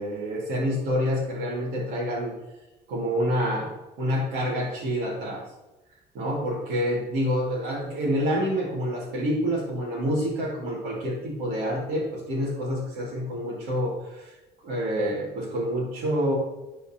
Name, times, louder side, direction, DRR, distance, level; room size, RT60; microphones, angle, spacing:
voice 1, 0.0-2.3 2.9-3.7 4.0-5.4 6.1-14.4 14.6-16.3, equal, 85° right, -6 dB, 2.2 m, -27 dB
11.5 x 4.5 x 2.9 m, 1.0 s
cardioid pair, 110°, 17 cm